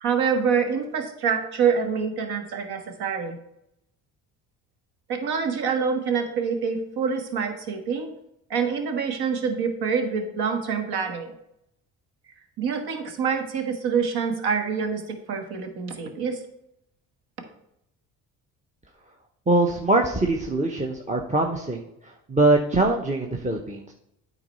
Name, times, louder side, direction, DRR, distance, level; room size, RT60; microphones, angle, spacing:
voice 1, 0.0-3.4 5.1-8.1 8.5-11.3 12.6-16.4, right 6 dB, 70° right, 6 dB, 1.5 m, -26 dB
voice 2, 19.5-21.9 22.3-23.9, right 2 dB, 20° right, 1 dB, 0.9 m, -22 dB
9.0 x 4.0 x 5.5 m, 0.79 s
supercardioid pair, 70°, 40 cm